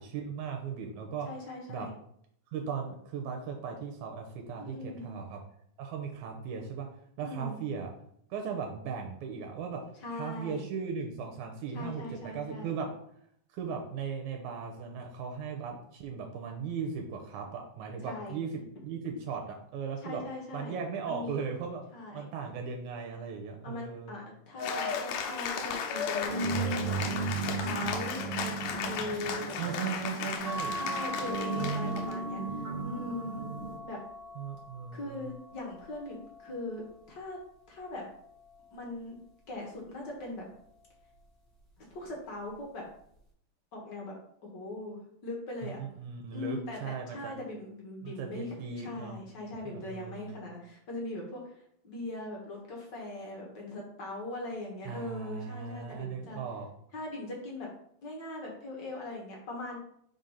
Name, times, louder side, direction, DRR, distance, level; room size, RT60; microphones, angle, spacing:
voice 1, 0.0-1.3 1.7-1.9 2.5-5.4 5.8-6.9 7.2-7.9 8.3-9.8 10.1-12.9 13.5-20.2 20.5-21.8 22.1-24.2 29.6-30.8 34.4-35.3 45.6-47.3 48.0-49.2 49.7-50.3 54.9-56.7, right 6 dB, 80° right, 2 dB, 2.1 m, -37 dB
voice 2, 1.2-1.9 4.6-5.2 7.2-7.6 9.9-10.6 11.7-12.7 18.0-18.4 20.0-20.7 21.1-21.4 21.9-22.2 23.6-26.8 27.4-29.8 30.8-33.4 33.8-34.0 34.9-37.4 37.7-38.0 38.7-39.2 39.5-40.5 41.8-42.8 43.7-44.1 44.4-45.8 46.3-56.4 56.9-57.7 58.0-59.8, left 2 dB, 55° left, -1 dB, 1.2 m, -40 dB
Cheering / Applause, 24.6-32.1, left 6 dB, 85° left, 2.2 m, -35 dB
sound 1, 26.3-33.8, right 4 dB, 40° right, 1.8 m, -35 dB
sound 2, 30.4-37.1 37.7-39.1 40.3-40.8 41.1-41.2, right 1 dB, ahead, 1.3 m, -42 dB
4.8 x 3.9 x 5.4 m, 0.70 s
omnidirectional pair, 3.6 m